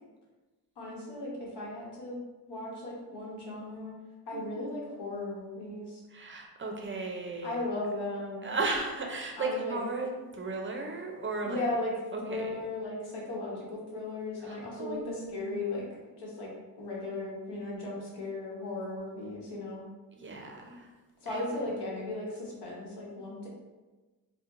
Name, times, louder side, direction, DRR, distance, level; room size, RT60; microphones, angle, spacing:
voice 1, 0.8-2.2 2.4-3.9 4.3-6.0 7.4-8.5 9.4-9.8 11.4-16.5 16.8-19.8 21.2-23.5, left 2 dB, 75° left, -3 dB, 1.1 m, -36 dB
voice 2, 4.3-4.8 6.1-7.6 8.4-11.6 12.1-12.5 14.4-15.7 20.2-20.9 21.3-21.4, right 3 dB, 30° right, 1 dB, 0.5 m, -35 dB
4.3 x 2.2 x 2.5 m, 1.2 s
cardioid pair, 80°, 40 cm